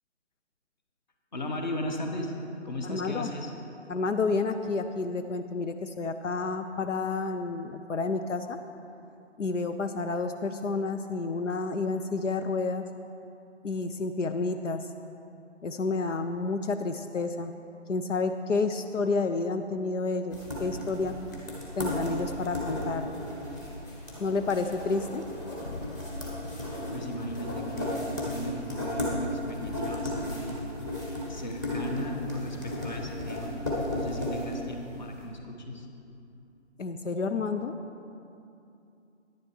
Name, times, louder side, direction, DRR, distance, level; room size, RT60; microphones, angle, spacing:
voice 1, 1.3-2.3 2.6-3.5 26.9-30.6 31.3-33.5 33.9-35.9, left 1 dB, 35° left, 3 dB, 1.2 m, -36 dB
voice 2, 2.8-3.3 3.9-8.6 9.4-12.8 13.6-14.9 15.6-17.5 17.9-21.1 21.8-23.1 24.2-25.2 36.8-37.7, left 3 dB, 80° left, 8 dB, 0.7 m, -30 dB
sound 1, 20.3-35.1, left 1 dB, 15° left, 1.3 m, -35 dB
sound 2, 25.6-35.2, left 1 dB, 55° left, 1.5 m, -47 dB
10.5 x 10.0 x 4.6 m, 2.7 s
figure-of-eight pair, 165°, 37 cm